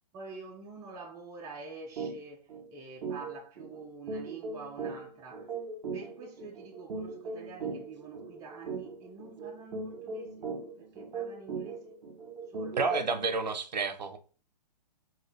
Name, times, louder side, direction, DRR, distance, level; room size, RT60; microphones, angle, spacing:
voice 1, 0.1-5.5 5.8-10.5 10.8-12.0 12.5-12.8, right 4 dB, 15° right, 0.5 m, -47 dB
sound 1, 2.0-2.1 2.5-2.6 3.0-13.2, right 4 dB, 55° right, 1.2 m, -39 dB
voice 2, 12.8-14.2, right 4 dB, 80° right, 0.5 m, -30 dB
2.8 x 2.5 x 3.3 m
figure-of-eight pair, 125°, 21 cm